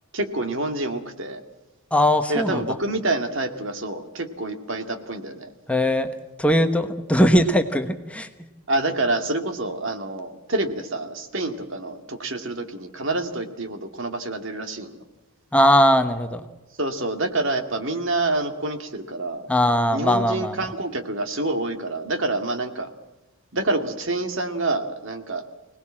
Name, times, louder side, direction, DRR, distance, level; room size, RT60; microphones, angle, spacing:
voice 1, 0.1-1.4 2.3-5.5 8.7-15.0 16.8-19.5 19.9-22.9 23.5-25.4, right 2 dB, 60° right, 7 dB, 2.2 m, -27 dB
voice 2, 1.9-2.8 5.7-6.1 6.4-8.3 15.5-16.5 19.5-20.7, equal, 5° left, 6 dB, 1.1 m, -20 dB
25.5 x 19.0 x 7.5 m, 1.1 s
head